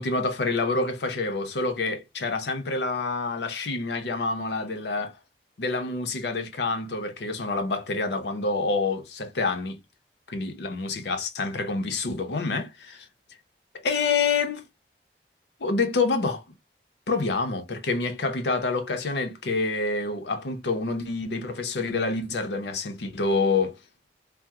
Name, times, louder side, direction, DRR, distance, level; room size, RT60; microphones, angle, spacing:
voice 1, 0.0-5.1 5.6-9.8 10.3-13.0 13.8-14.6 15.6-16.4 17.1-23.8, left 3 dB, 75° left, 0.6 m, -27 dB
3.5 x 2.0 x 2.8 m
head